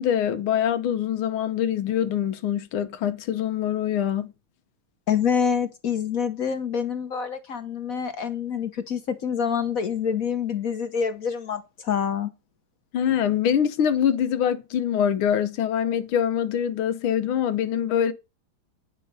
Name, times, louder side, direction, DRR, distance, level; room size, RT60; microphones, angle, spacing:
voice 1, 0.0-4.3 12.9-18.1, left 9 dB, 75° left, 1.7 m, -24 dB
voice 2, 5.1-12.3, left 7 dB, 55° left, 1.0 m, -26 dB
9.8 x 5.5 x 5.4 m
omnidirectional pair, 2.3 m